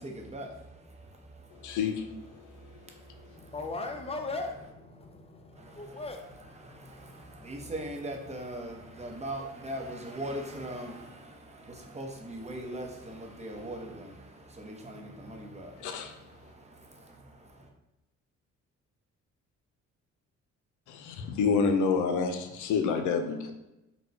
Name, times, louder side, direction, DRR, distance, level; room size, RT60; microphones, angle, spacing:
voice 1, 0.0-1.8 2.3-3.6 5.5-17.7, right 1 dB, 20° right, 0.7 m, -41 dB
voice 2, 1.6-2.1 15.8-16.1 20.9-23.5, left 5 dB, 80° left, 0.6 m, -28 dB
voice 3, 3.3-7.6, left 3 dB, 20° left, 0.6 m, -40 dB
4.0 x 2.2 x 4.3 m
cardioid pair, 90°, 30 cm